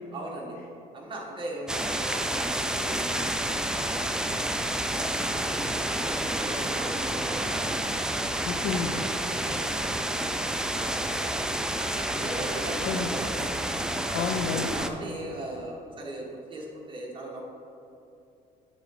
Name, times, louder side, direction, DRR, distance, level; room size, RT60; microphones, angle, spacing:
voice 1, 0.1-0.6 0.9-4.5 4.8-7.6 8.3-8.5 8.9-13.4 13.9-14.3 14.7-17.4, right 1 dB, 30° right, -2 dB, 1.5 m, -40 dB
sound 1, 1.7-14.9, right 1 dB, 5° right, 0.3 m, -29 dB
voice 2, 8.5-8.9 12.8-13.1 14.1-14.7, left 7 dB, 80° left, 3 dB, 0.5 m, -30 dB
9.2 x 3.7 x 4.8 m, 2.7 s
cardioid pair, 110°, 17 cm